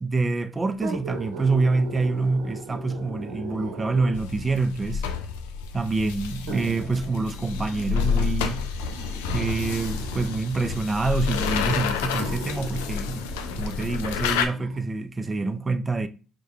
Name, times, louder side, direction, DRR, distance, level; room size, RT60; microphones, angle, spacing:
voice 1, 0.0-5.0 5.7-8.7 9.3-13.3 13.6-16.1, right 3 dB, 25° right, 0.4 m, -26 dB
sound 1, 0.7-4.4 5.3-5.4 6.5-10.4 11.4-11.5 12.1-14.8 15.3-15.4, right 3 dB, 80° right, 0.9 m, -38 dB
sound 2, 4.1-14.5, left 6 dB, 80° left, 0.3 m, -29 dB
4.7 x 2.2 x 2.7 m
hypercardioid pair, 55°, 0 cm